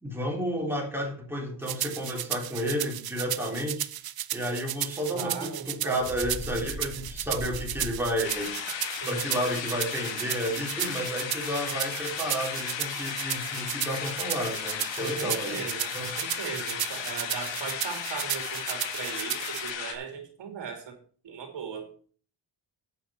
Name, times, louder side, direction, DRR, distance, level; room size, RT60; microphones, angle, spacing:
voice 1, 0.0-3.9 4.3-8.5 9.1-15.6 15.9-16.2, equal, 5° right, 0 dB, 3.6 m, -31 dB
sound 1, 1.7-19.7, right 12 dB, 55° right, 0.7 m, -34 dB
voice 2, 5.1-6.1 9.0-9.4 15.0-21.0 21.2-21.9, right 6 dB, 75° right, 4 dB, 3.0 m, -38 dB
Bird, 6.0-8.5, left 1 dB, 10° left, 5.2 m, -40 dB
sound 2, 8.2-19.9, left 8 dB, 80° left, 2.1 m, -35 dB
11.5 x 8.9 x 4.4 m, 0.43 s
wide cardioid pair, 150°, 44 cm